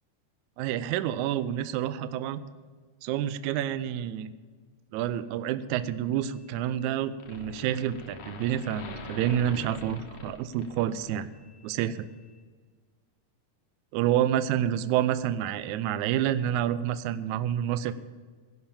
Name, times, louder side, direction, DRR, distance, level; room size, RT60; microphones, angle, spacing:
voice 1, 0.6-2.4 3.0-4.3 4.9-11.3 11.6-12.1 13.9-17.9, right 11 dB, 80° right, 13 dB, 1.9 m, -28 dB
sound 1, 6.3-6.9 7.2-11.6, left 2 dB, 70° left, 2.8 m, -43 dB
17.0 x 5.7 x 8.8 m, 1.5 s
omnidirectional pair, 3.6 m